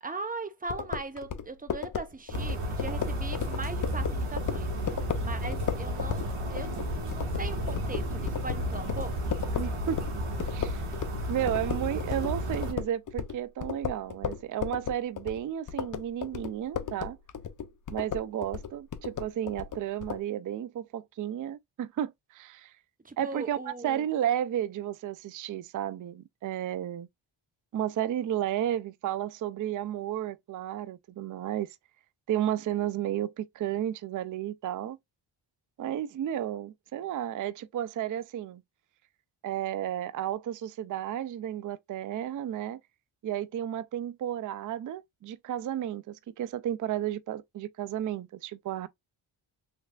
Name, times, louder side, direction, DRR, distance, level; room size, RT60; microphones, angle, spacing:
voice 1, 0.0-9.3 23.0-24.1, right 3 dB, 15° right, 0.8 m, -40 dB
sound 1, 0.7-11.2 11.5-20.2, left 7 dB, 40° left, 0.6 m, -35 dB
sound 2, 2.3-12.7, equal, 75° right, 2.0 m, -32 dB
voice 2, 9.5-10.0 10.5-10.9 11.3-17.2 17.9-22.7 23.2-27.1 27.7-31.7 32.3-35.0 35.8-38.6 39.4-42.8 43.2-48.9, right 11 dB, 40° right, 0.4 m, -32 dB
3.3 x 3.3 x 2.3 m
cardioid pair, 60°, 50 cm